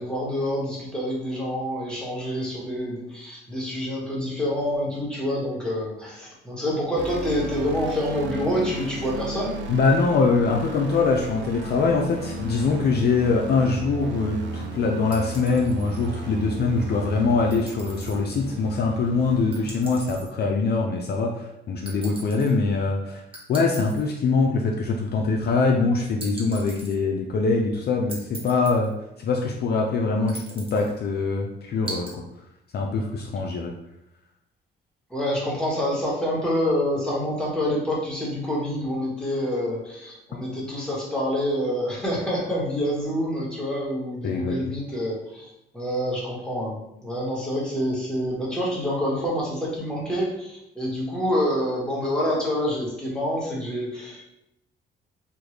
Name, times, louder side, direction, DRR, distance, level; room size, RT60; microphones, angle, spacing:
voice 1, 0.0-9.6 35.1-54.3, equal, 5° left, -6 dB, 1.3 m, -27 dB
sound 1, 7.0-20.2, right 2 dB, 65° right, 0.5 m, -35 dB
voice 2, 9.7-23.2 23.5-28.9 29.2-32.2 32.7-33.7 40.3-40.4 44.2-44.6, left 4 dB, 55° left, 1 dB, 0.5 m, -23 dB
sound 2, 15.1-16.1 17.5-18.2 19.5-20.3 21.9-22.5 23.3-24.1 26.2-27.0 28.1-28.9 30.3-30.9 31.9-32.1, right 2 dB, 25° right, 1.1 m, -40 dB
3.4 x 2.3 x 3.1 m, 0.82 s
cardioid pair, 90°, 20 cm